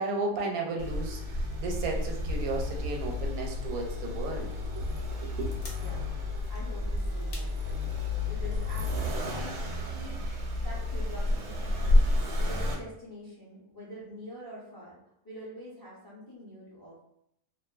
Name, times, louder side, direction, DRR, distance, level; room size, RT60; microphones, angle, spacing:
voice 1, 0.0-4.9 5.2-5.5, right 3 dB, 85° right, 1 dB, 1.1 m, -34 dB
Accelerating revving vroom, 0.8-12.7, left 1 dB, 65° right, 0.8 m, -30 dB
sound 1, 5.3-9.9 10.2-10.3, left 2 dB, 65° left, 0.8 m, -52 dB
voice 2, 5.7-6.1 6.5-9.6 9.9-12.0 12.4-14.9 15.2-17.0, left 1 dB, 30° left, -6 dB, 0.4 m, -46 dB
2.6 x 2.4 x 2.3 m, 0.74 s
omnidirectional pair, 1.5 m